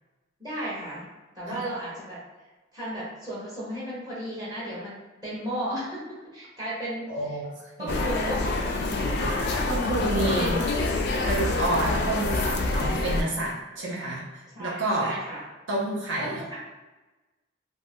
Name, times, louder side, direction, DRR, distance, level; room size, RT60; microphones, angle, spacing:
voice 1, 0.4-1.1 1.3-2.2 2.7-4.9 5.2-7.1 7.8-9.1 9.5-9.7 10.1-10.5 14.5-15.4 16.2-16.5, right 1 dB, 20° right, -8 dB, 0.8 m, -34 dB
voice 2, 7.1-8.0 9.7-10.5 11.2-15.1 15.7-16.4, right 2 dB, 70° right, -4 dB, 0.6 m, -29 dB
sound 1, 7.9-13.2, left 2 dB, 55° left, 0.3 m, -26 dB
2.5 x 2.2 x 3.4 m, 1.1 s
head